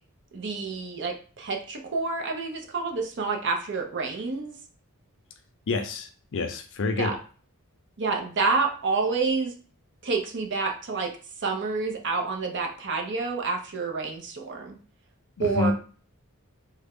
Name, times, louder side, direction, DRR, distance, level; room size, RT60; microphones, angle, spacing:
voice 1, 0.3-4.5 7.0-7.2 8.0-9.6 10.0-11.1 11.4-14.8 15.4-15.7, right 4 dB, 55° right, 2 dB, 0.7 m, -28 dB
voice 2, 5.7-7.1 15.4-15.7, left 3 dB, 60° left, 7 dB, 0.5 m, -28 dB
3.5 x 2.2 x 3.6 m, 0.40 s
head